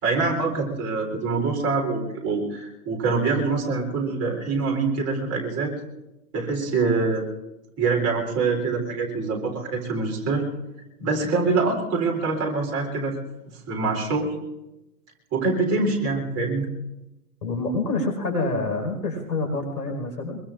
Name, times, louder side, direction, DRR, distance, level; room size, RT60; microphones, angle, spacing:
voice 1, 0.0-5.7 6.3-7.2 7.8-10.4 11.0-13.2 13.5-14.3 15.3-16.7, right 4 dB, 30° right, 0 dB, 3.8 m, -25 dB
voice 2, 17.4-20.4, left 2 dB, 85° left, 4 dB, 5.2 m, -27 dB
24.0 x 22.5 x 2.6 m, 0.98 s
hypercardioid pair, 120°, 48 cm